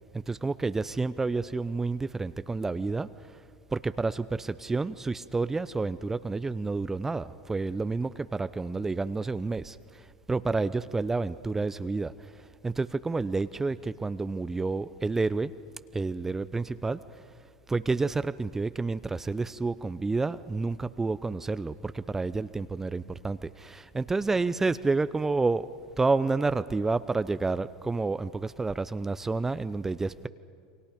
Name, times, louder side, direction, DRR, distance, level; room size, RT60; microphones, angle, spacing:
voice 1, 0.1-3.1 3.7-9.8 10.3-12.1 12.6-15.5 15.9-17.0 17.7-25.7 26.0-30.3, right 3 dB, 15° right, 14 dB, 0.6 m, -29 dB
29.5 x 24.0 x 5.2 m, 2.4 s
hypercardioid pair, 85°, 3 cm